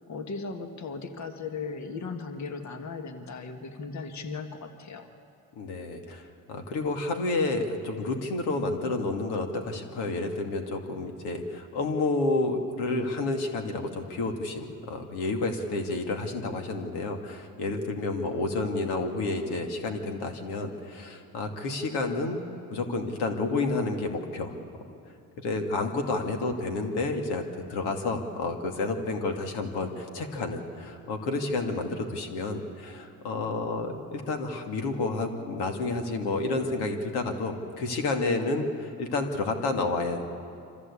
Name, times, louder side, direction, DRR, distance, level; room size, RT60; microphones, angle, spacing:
voice 1, 0.1-5.1, left 4 dB, 45° left, 6 dB, 1.8 m, -37 dB
voice 2, 5.6-22.4 22.7-24.5 25.4-27.4 27.7-40.2, left 3 dB, 75° left, 4 dB, 2.4 m, -30 dB
25.5 x 14.5 x 8.4 m, 2.5 s
supercardioid pair, 90°, 40 cm